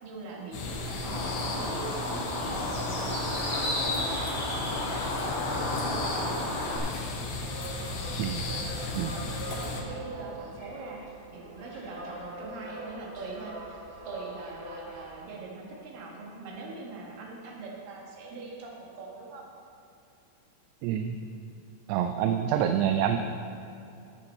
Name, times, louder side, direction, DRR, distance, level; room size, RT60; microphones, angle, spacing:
voice 1, 0.0-4.1 4.6-7.2 7.8-8.0 8.3-11.0 11.3-19.5, right 3 dB, 60° right, -3 dB, 3.1 m, -42 dB
sound 1, 0.5-9.8, left 3 dB, 75° left, 3.2 m, -35 dB
Bird, 1.0-6.8, left 1 dB, 30° left, 2.3 m, -32 dB
sound 2, 7.2-15.1, right 1 dB, 20° right, 2.0 m, -43 dB
voice 2, 8.2-8.6 8.9-9.1 20.8-21.2 21.9-23.2, right 9 dB, 85° right, 6 dB, 2.6 m, -27 dB
13.0 x 8.8 x 4.3 m, 2.7 s
omnidirectional pair, 5.0 m